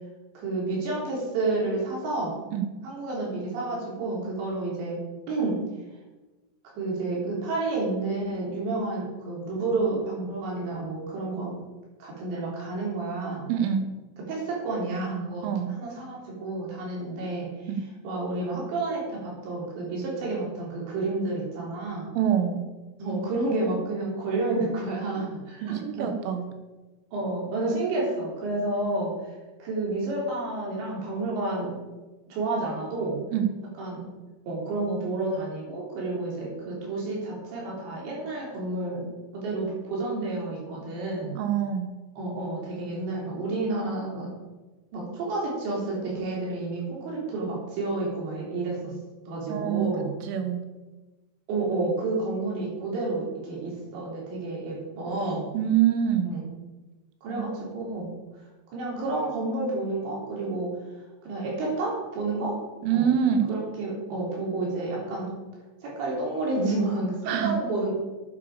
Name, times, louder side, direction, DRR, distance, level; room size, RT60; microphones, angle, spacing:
voice 1, 0.4-2.4 2.8-5.0 5.3-5.6 6.8-11.5 12.0-13.5 14.3-15.5 15.8-17.5 18.0-22.1 23.0-26.1 27.1-29.1 29.6-31.8 32.3-33.2 33.8-34.1 34.5-39.1 39.3-41.4 42.2-44.3 44.9-49.0 49.3-50.1 51.5-55.5 56.3-56.5 57.2-58.1 58.7-60.7 61.2-62.6 62.9-63.1 63.5-65.3 65.8-67.9, right 2 dB, 60° right, -4 dB, 5.5 m, -30 dB
voice 2, 13.5-13.9 15.4-15.8 17.7-17.9 22.2-22.6 25.2-25.3 25.6-26.5 33.3-33.5 41.4-41.9 49.5-49.9 50.2-50.6 55.5-56.3 57.3-57.6 62.8-63.5 67.3-67.6, right 9 dB, 75° right, 7 dB, 3.6 m, -25 dB
12.5 x 9.1 x 5.0 m, 1.2 s
omnidirectional pair, 5.9 m